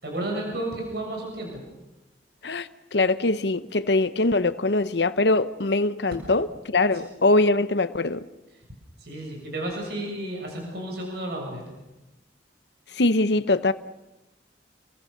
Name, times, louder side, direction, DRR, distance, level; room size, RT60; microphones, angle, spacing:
voice 1, 0.0-1.6 9.0-11.6, right 1 dB, 65° right, 7.2 m, -32 dB
voice 2, 2.4-6.5 6.7-8.2 12.9-13.7, left 2 dB, 70° left, 0.9 m, -22 dB
29.0 x 23.5 x 6.7 m
head